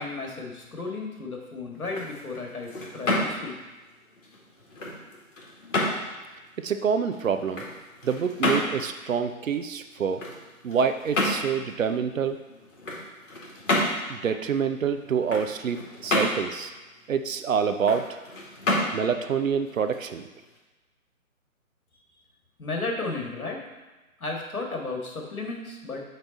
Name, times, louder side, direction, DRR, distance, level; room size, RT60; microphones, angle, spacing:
voice 1, 0.0-3.6 22.6-23.6 24.2-26.0, left 3 dB, 75° left, 0 dB, 1.7 m, -34 dB
sound 1, 1.7-20.6, left 1 dB, 60° left, 2.1 m, -31 dB
voice 2, 6.6-7.6 8.0-10.2 10.6-12.4 14.1-16.7 17.1-18.1 18.9-20.3, right 6 dB, 65° right, 8 dB, 0.7 m, -26 dB
8.0 x 3.4 x 4.1 m, 1.2 s
figure-of-eight pair, 145°, 43 cm